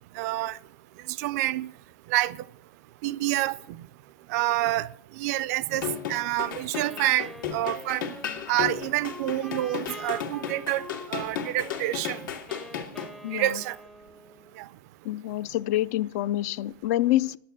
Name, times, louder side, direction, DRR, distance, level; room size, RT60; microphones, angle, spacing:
voice 1, 0.2-0.6 1.2-1.7 2.1-2.4 3.0-3.6 4.3-4.9 5.2-8.1 8.5-12.2 13.3-13.8 14.6-14.7, right 16 dB, 55° right, 0.4 m, -27 dB
sound 1, 5.7-13.1, left 8 dB, 90° left, 1.9 m, -34 dB
Wind instrument woodwind instrument, 6.7-14.7, left 1 dB, 5° left, 0.5 m, -45 dB
voice 2, 15.0-17.4, left 14 dB, 55° left, 0.4 m, -26 dB
9.4 x 8.7 x 7.4 m
supercardioid pair, 140°, 10 cm